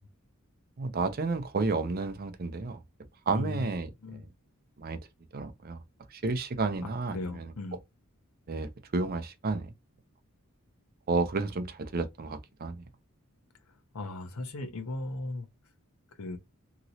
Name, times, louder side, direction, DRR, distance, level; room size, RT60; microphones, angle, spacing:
voice 1, 0.8-2.8 3.3-4.3 4.8-5.0 5.3-5.8 6.1-7.5 8.5-9.7 11.1-12.8, right 3 dB, 45° right, 0.5 m, -31 dB
voice 2, 3.3-3.7 4.0-4.3 7.1-7.8 13.9-15.5 16.2-16.4, left 2 dB, 90° left, 0.7 m, -37 dB
2.9 x 2.9 x 2.7 m
head